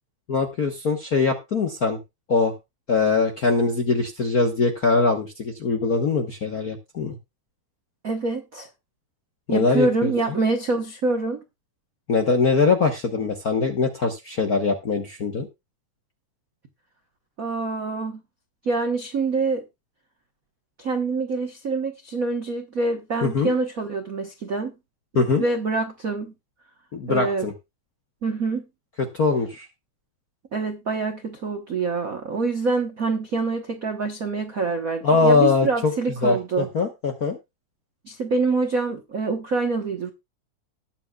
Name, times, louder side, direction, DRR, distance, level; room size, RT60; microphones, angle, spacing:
voice 1, 0.3-2.0 2.3-2.5 2.9-7.2 9.5-10.1 12.1-15.5 23.2-23.5 25.1-25.4 26.9-27.5 29.1-29.7 35.0-35.9 36.2-37.4, left 4 dB, 55° left, 1.0 m, -22 dB
voice 2, 8.0-8.7 9.5-11.4 17.4-18.2 18.6-19.6 20.8-24.7 25.4-26.3 27.1-27.5 28.2-28.6 30.5-36.7 38.0-40.1, right 3 dB, 60° right, 0.8 m, -25 dB
20.0 x 7.4 x 2.3 m
omnidirectional pair, 3.3 m